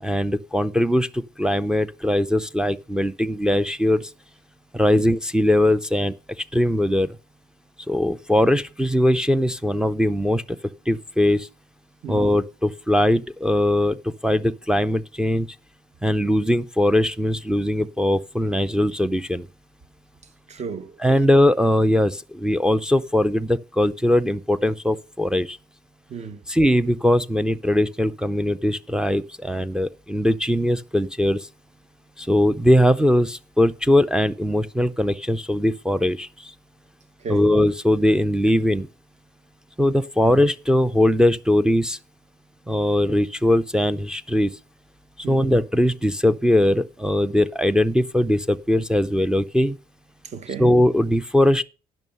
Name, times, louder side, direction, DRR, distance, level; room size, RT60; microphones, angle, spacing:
voice 1, 0.0-4.1 4.7-6.1 6.5-7.1 7.9-10.4 10.9-11.5 12.1-15.5 16.0-19.5 21.0-25.6 26.5-31.5 32.2-36.5 37.3-38.9 39.8-42.0 42.7-44.5 45.3-49.8 50.6-51.6, left 1 dB, 5° right, 0.5 m, -20 dB
voice 2, 20.5-21.0 26.1-26.4 37.2-37.6 45.2-45.5 50.2-50.8, right 6 dB, 40° right, 1.2 m, -34 dB
11.0 x 6.2 x 5.4 m
cardioid pair, 110°, 17 cm